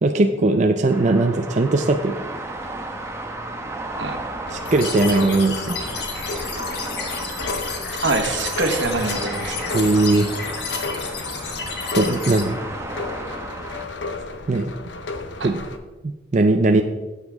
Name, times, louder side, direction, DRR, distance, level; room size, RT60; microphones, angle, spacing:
voice 1, 0.0-2.2 4.5-5.8 9.7-10.3 11.9-12.6 14.5-14.7 15.4-15.6 16.0-16.8, right 2 dB, 40° right, 5 dB, 0.5 m, -19 dB
sound 1, 0.9-13.8, right 2 dB, 15° right, 0.9 m, -34 dB
sound 2, 4.4-15.8, left 3 dB, 80° left, 0.8 m, -34 dB
sound 3, 4.7-12.4, left 5 dB, 60° left, 1.4 m, -31 dB
voice 2, 8.0-9.7 15.4-15.5, right 3 dB, 80° right, 5 dB, 1.2 m, -24 dB
14.0 x 8.2 x 3.5 m, 1.2 s
head